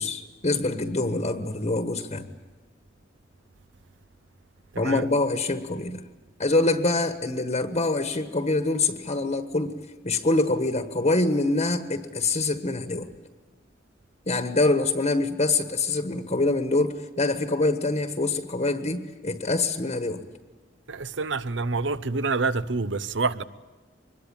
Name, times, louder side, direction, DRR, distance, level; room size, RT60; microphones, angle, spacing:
voice 1, 0.0-2.2 4.8-6.1 6.4-9.7 10.0-13.1 14.3-20.2, left 2 dB, 35° left, 1.3 m, -25 dB
voice 2, 4.7-5.0 20.9-23.4, right 3 dB, 70° right, 0.8 m, -27 dB
24.5 x 21.5 x 8.8 m
head